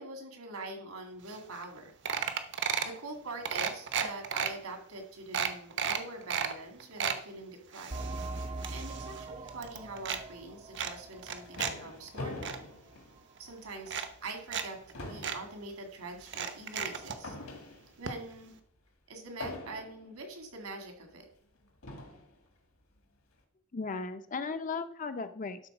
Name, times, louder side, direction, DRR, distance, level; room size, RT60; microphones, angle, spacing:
voice 1, 0.0-1.9 2.8-8.0 8.5-12.6 13.4-17.4 18.0-18.6 19.1-21.3, right 2 dB, 75° right, 4 dB, 2.1 m, -44 dB
sound 1, 1.3-1.4 1.6-1.8 2.1-3.0 3.4-4.5 5.0-5.1 5.3-6.5 6.8-7.2 7.7-9.2 9.5-10.2 10.7-11.7 12.1-12.6 13.4-13.5 13.9-14.6 14.9-15.0 15.2-15.4 16.2-17.2 18.1-18.2 18.4-18.5, right 7 dB, 55° right, 0.9 m, -33 dB
sound 2, 7.9-12.2 12.5-12.6 13.2-13.3, right 2 dB, 25° right, 0.6 m, -42 dB
sound 3, 11.0-13.7 14.1-14.3 14.6-18.1 19.4-20.2 21.0-21.1 21.8-22.4, left 2 dB, 65° left, 1.7 m, -44 dB
voice 2, 23.7-25.7, left 4 dB, 35° left, 10 dB, 0.6 m, -36 dB
12.0 x 3.9 x 6.0 m, 0.62 s
head